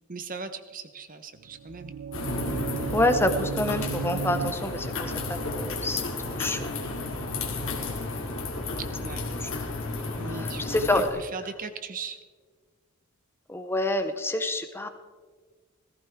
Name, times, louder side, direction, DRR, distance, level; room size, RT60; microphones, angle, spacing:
voice 1, 0.1-1.9 8.8-9.2 10.1-12.2, right 4 dB, 40° right, 9 dB, 0.9 m, -39 dB
sound 1, 1.4-7.3, right 7 dB, 75° right, 0.4 m, -37 dB
sound 2, 2.1-11.1, left 3 dB, 60° left, 2.3 m, -32 dB
voice 2, 2.9-5.1 5.5-6.0 6.3-6.7 7.4-7.5 9.4-9.5 10.3-11.2 13.5-14.9, left 1 dB, 10° left, 7 dB, 0.6 m, -27 dB
17.5 x 15.0 x 3.5 m, 1.5 s
head